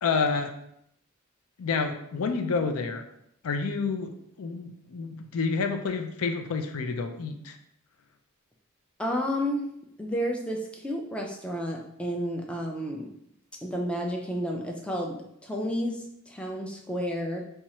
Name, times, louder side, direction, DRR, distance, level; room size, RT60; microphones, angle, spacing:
voice 1, 0.0-0.5 1.6-3.0 3.4-4.1 4.4-7.6, left 4 dB, 80° left, 5 dB, 0.4 m, -29 dB
voice 2, 9.0-9.7 10.0-13.1 13.6-17.4, equal, 5° left, 0 dB, 0.4 m, -31 dB
4.2 x 2.3 x 2.9 m, 0.75 s
head